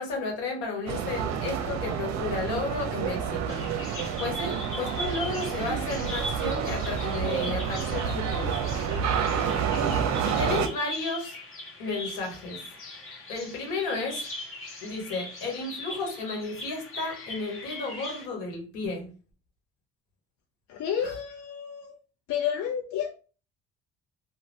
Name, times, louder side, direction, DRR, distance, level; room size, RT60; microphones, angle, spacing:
voice 1, 0.0-3.6 4.2-8.5 10.2-11.4 11.8-12.6 13.3-14.3 14.8-19.1 21.0-21.1, left 3 dB, 75° left, 1 dB, 1.1 m, -33 dB
sound 1, 0.9-10.7, right 7 dB, 55° right, 0.5 m, -29 dB
Bird vocalization bird call bird song, 3.5-18.3, left 1 dB, 40° left, 1.0 m, -40 dB
voice 2, 20.7-22.0 22.3-23.1, left 8 dB, 60° left, 2 dB, 0.6 m, -30 dB
2.5 x 2.1 x 3.1 m, 0.37 s
hypercardioid pair, 55°, 34 cm